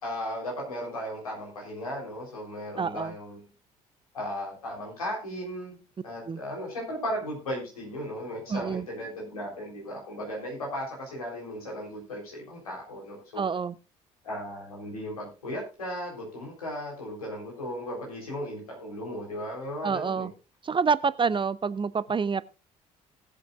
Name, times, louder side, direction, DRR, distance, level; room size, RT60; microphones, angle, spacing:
voice 1, 0.0-3.4 4.1-5.8 6.0-13.4 14.2-20.3, equal, 90° left, 3.8 m, -36 dB
voice 2, 2.8-3.1 6.3-6.4 8.5-8.9 13.4-13.7 19.8-20.3 20.6-22.4, right 5 dB, 30° right, 0.6 m, -27 dB
19.5 x 7.7 x 2.4 m
hypercardioid pair, 50°, 18 cm